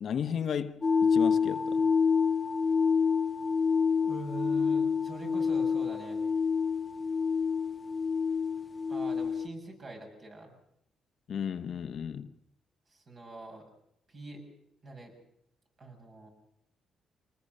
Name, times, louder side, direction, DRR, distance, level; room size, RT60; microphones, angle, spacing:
voice 1, 0.0-1.9 11.3-12.3, left 8 dB, 60° left, 1.0 m, -34 dB
sound 1, 0.8-9.5, left 5 dB, 25° left, 0.8 m, -27 dB
voice 2, 4.0-6.3 8.9-10.5 12.9-13.7 14.1-14.4 14.8-15.1 15.8-16.3, right 1 dB, 45° right, 6.8 m, -43 dB
25.0 x 19.5 x 6.7 m
cardioid pair, 90°, 0 cm